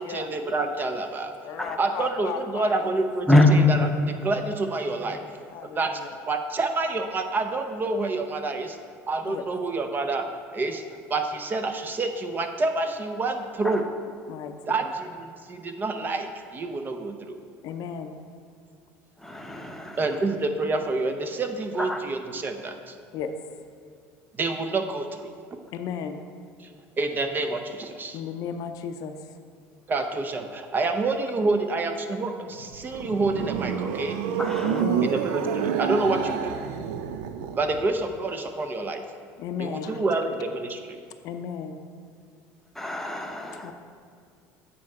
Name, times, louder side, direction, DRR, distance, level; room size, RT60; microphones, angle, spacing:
voice 1, 0.1-1.4 1.8-3.3 3.7-5.3 5.7-8.8 9.1-10.3 10.5-10.8 11.1-13.8 14.7-17.3 20.0-22.9 24.4-25.3 27.0-28.2 29.9-34.2 35.0-36.6 37.6-39.0 39.6-41.0, right 3 dB, 30° right, 7 dB, 0.6 m, -28 dB
voice 2, 1.4-3.1 3.3-3.5 5.5-6.1 9.2-9.4 14.3-14.5 14.8-14.9 17.6-18.1 23.1-23.3 25.7-26.2 28.1-29.1 34.7-35.1 39.4-40.0 41.2-41.8 43.6-43.7, left 7 dB, 60° left, 7 dB, 0.5 m, -34 dB
voice 3, 3.3-3.8 13.6-13.8 19.2-20.2 21.8-22.0 34.4-34.8 42.7-43.7, left 2 dB, 5° left, 2 dB, 0.8 m, -23 dB
sound 1, 32.6-37.9, right 8 dB, 85° right, 0.4 m, -28 dB
8.6 x 4.4 x 4.8 m, 2.2 s
supercardioid pair, 110°, 7 cm